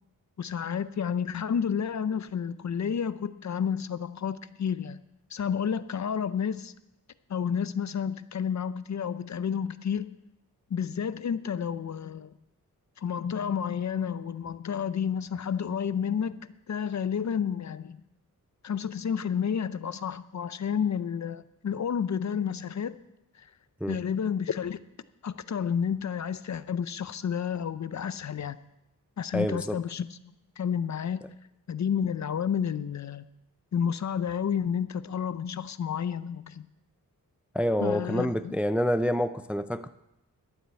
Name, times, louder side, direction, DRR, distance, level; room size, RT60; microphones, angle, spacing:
voice 1, 0.4-5.0 5.3-6.7 7.3-10.1 10.7-12.3 13.0-16.4 16.7-18.0 18.6-23.0 23.4-23.5 23.9-24.8 25.2-28.6 29.2-30.1 30.6-31.2 31.7-33.2 33.7-36.7 37.8-38.5, left 7 dB, 50° left, 14 dB, 0.6 m, -30 dB
voice 2, 29.3-29.8 37.5-39.9, equal, 5° right, 11 dB, 0.4 m, -27 dB
12.0 x 7.9 x 8.2 m, 0.88 s
wide cardioid pair, 140°, 35 cm